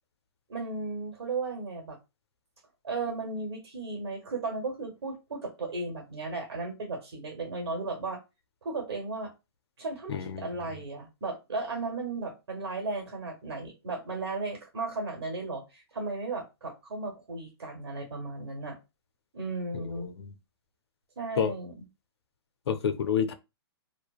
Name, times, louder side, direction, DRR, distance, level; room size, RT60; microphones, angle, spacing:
voice 1, 0.5-2.0 2.8-8.2 8.6-9.3 9.8-18.8 19.3-20.1 21.2-21.9, right 3 dB, 70° right, 1.0 m, -35 dB
voice 2, 10.1-10.5 19.7-20.3 21.4-21.5 22.7-23.3, left 7 dB, 75° left, 0.5 m, -29 dB
2.7 x 2.0 x 2.3 m
hypercardioid pair, 140°, 14 cm